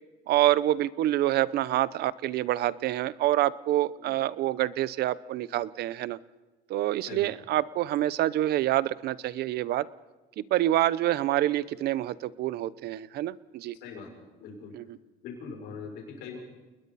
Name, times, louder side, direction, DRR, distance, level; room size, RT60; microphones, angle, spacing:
voice 1, 0.3-6.2 6.7-9.9 10.4-13.8 14.7-15.0, right 14 dB, 75° right, 18 dB, 0.8 m, -27 dB
voice 2, 14.4-14.7 15.2-16.4, left 5 dB, 90° left, 0 dB, 6.8 m, -41 dB
29.5 x 21.0 x 4.2 m, 1.2 s
cardioid pair, 110°, 17 cm